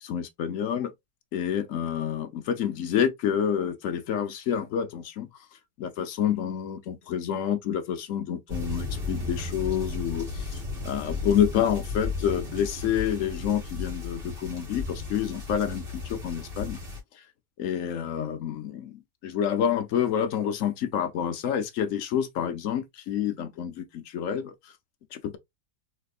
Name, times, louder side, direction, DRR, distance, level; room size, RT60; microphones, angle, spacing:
voice 1, 0.0-0.9 1.3-5.3 5.8-16.8 17.6-24.5 25.1-25.4, left 9 dB, 65° left, 0.9 m, -28 dB
sound 1, 8.5-17.0, left 3 dB, 35° right, 2.0 m, -34 dB
3.4 x 3.4 x 2.3 m
omnidirectional pair, 1.8 m